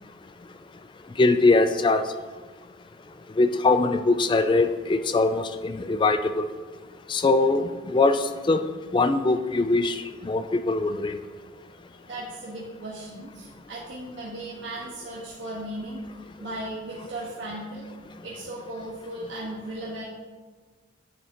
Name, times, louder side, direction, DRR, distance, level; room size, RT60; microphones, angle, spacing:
voice 1, 1.2-2.0 3.4-6.5 7.1-8.7 8.9-11.2, left 3 dB, 25° left, 10 dB, 0.3 m, -22 dB
voice 2, 12.0-16.0 16.4-20.0, right 1 dB, 70° right, -6 dB, 1.4 m, -36 dB
9.5 x 7.3 x 2.9 m, 1.4 s
head